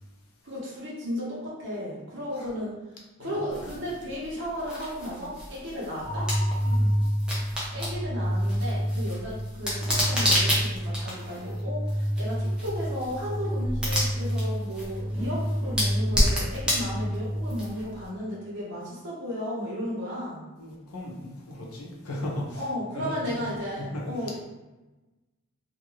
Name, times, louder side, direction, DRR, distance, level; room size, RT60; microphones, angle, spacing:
voice 1, 0.4-2.7 3.2-6.3 7.7-20.4 22.6-24.5, equal, 55° right, -6 dB, 1.1 m, -34 dB
sound 1, 3.5-18.1, equal, 5° right, 0.6 m, -31 dB
sound 2, 6.0-18.0, equal, 35° right, 0.8 m, -29 dB
voice 2, 6.6-7.0 20.6-22.6 22.9-23.4 23.8-24.1, left 1 dB, 80° left, -2 dB, 0.7 m, -36 dB
2.6 x 2.6 x 3.1 m, 1.1 s
head